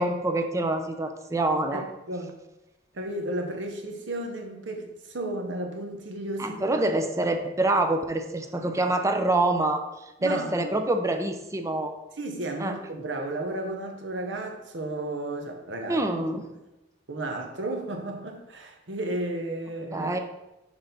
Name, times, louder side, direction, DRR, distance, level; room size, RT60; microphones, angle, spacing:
voice 1, 0.0-1.8 6.4-9.8 10.2-11.9 12.6-12.8 15.9-16.5 19.9-20.2, right 2 dB, 15° right, 6 dB, 0.5 m, -26 dB
voice 2, 1.7-2.3 2.9-6.6 10.2-10.7 12.2-16.0 17.1-20.2, right 1 dB, 75° right, 3 dB, 0.9 m, -33 dB
6.3 x 3.9 x 4.0 m, 0.97 s
head